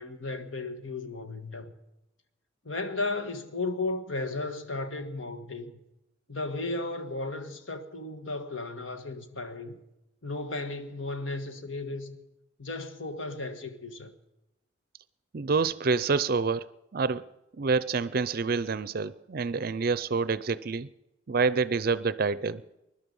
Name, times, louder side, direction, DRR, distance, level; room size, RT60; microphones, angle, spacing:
voice 1, 0.0-1.7 2.6-5.7 6.3-9.8 10.2-12.2 12.6-14.1, left 2 dB, 80° left, 1.5 m, -35 dB
voice 2, 15.3-17.3 17.6-20.9 21.3-22.6, right 4 dB, 50° right, 0.5 m, -27 dB
21.0 x 12.0 x 5.4 m
head